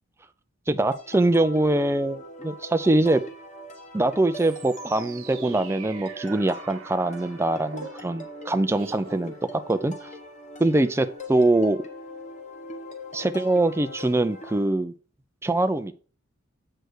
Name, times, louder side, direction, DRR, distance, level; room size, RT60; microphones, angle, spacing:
voice 1, 0.7-3.2 3.9-10.1 10.6-11.8 13.1-14.9 15.4-15.9, right 2 dB, 15° right, 9 dB, 0.4 m, -23 dB
sound 1, 0.9-14.6, left 1 dB, 35° left, 1.2 m, -42 dB
sound 2, 4.3-10.0, right 5 dB, 85° right, 0.9 m, -44 dB
7.9 x 3.3 x 6.3 m, 0.39 s
head